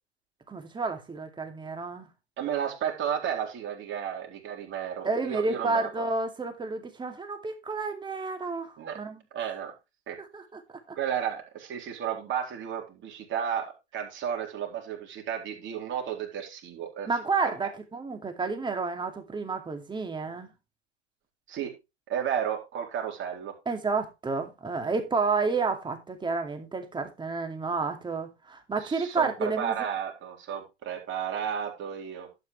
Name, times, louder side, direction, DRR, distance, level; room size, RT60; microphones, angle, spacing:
voice 1, 0.5-2.1 5.0-9.2 10.2-10.6 10.9-11.0 17.1-20.5 23.7-29.9, right 4 dB, 15° right, 2.4 m, -30 dB
voice 2, 2.4-6.0 8.8-9.0 9.3-9.7 10.1-10.2 11.0-17.1 21.5-21.7 22.1-23.5 28.8-32.3, right 8 dB, 35° right, 3.8 m, -33 dB
11.5 x 8.6 x 3.2 m
hypercardioid pair, 100°, 35 cm